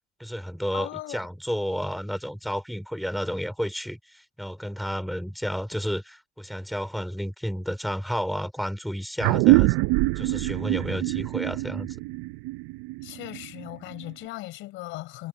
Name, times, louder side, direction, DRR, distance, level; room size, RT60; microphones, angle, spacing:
voice 1, 0.2-9.8 10.2-12.0, equal, ahead, 4.1 m, -31 dB
voice 2, 0.7-1.2 13.0-15.3, left 18 dB, 75° left, 5.3 m, -38 dB
sound 1, 9.2-14.1, right 21 dB, 85° right, 0.7 m, -24 dB
supercardioid pair, 90°, 20 cm